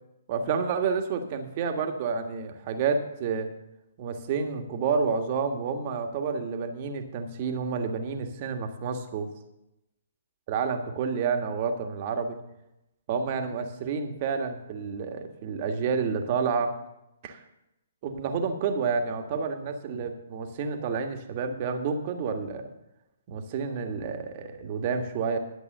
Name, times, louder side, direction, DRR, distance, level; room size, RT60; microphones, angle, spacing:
voice 1, 0.3-3.5 4.0-9.3 10.5-12.4 13.1-16.7 17.2-17.4 18.0-22.7 23.3-25.4, right 5 dB, 40° right, 5 dB, 1.6 m, -29 dB
11.5 x 7.9 x 6.6 m, 0.88 s
hypercardioid pair, 130°, 0 cm